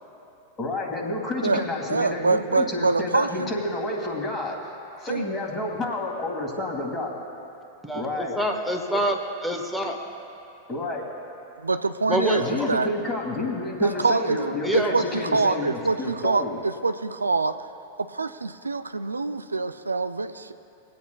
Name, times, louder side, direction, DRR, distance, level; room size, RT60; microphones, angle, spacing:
voice 1, 0.6-4.6 5.0-7.1 7.9-8.4 10.7-11.1 12.1-16.6, left 2 dB, 25° left, 0 dB, 2.0 m, -30 dB
voice 2, 1.9-3.5 5.1-5.3 11.6-12.4 12.7-12.9 13.8-16.4 16.8-17.6 18.1-20.5, right 3 dB, 90° right, 10 dB, 0.3 m, -25 dB
voice 3, 7.8-10.0 12.1-12.7 14.6-14.9, equal, ahead, 2 dB, 1.2 m, -26 dB
24.5 x 8.4 x 2.3 m, 2.7 s
figure-of-eight pair, 95°, 0 cm